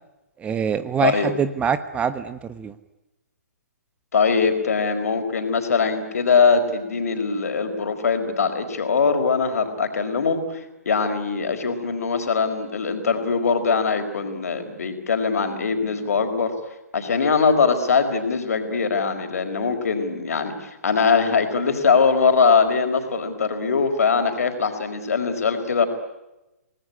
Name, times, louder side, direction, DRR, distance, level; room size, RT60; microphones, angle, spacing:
voice 1, 0.4-2.7, right 7 dB, 15° right, 12 dB, 1.2 m, -24 dB
voice 2, 1.0-1.3 4.1-16.5 16.9-25.9, left 5 dB, 65° left, 7 dB, 4.8 m, -21 dB
29.5 x 19.5 x 9.8 m, 0.99 s
figure-of-eight pair, 130°, 9 cm